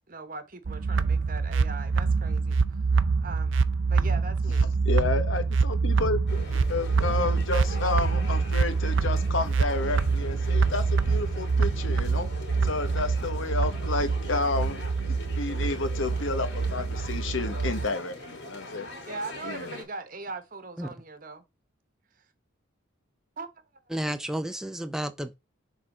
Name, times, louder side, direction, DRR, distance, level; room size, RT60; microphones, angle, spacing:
voice 1, 0.1-2.6 3.2-4.8 19.0-21.4 23.4-23.5, right 3 dB, 45° right, 1.1 m, -40 dB
sound 1, 0.7-17.9, right 4 dB, 70° right, 0.5 m, -26 dB
voice 2, 4.8-12.3 12.6-18.9 19.4-19.8, left 3 dB, 75° left, 1.1 m, -31 dB
sound 2, 6.3-19.8, left 2 dB, 55° left, 2.6 m, -42 dB
voice 3, 23.9-25.4, right 1 dB, 5° right, 0.4 m, -31 dB
6.8 x 3.6 x 4.2 m
head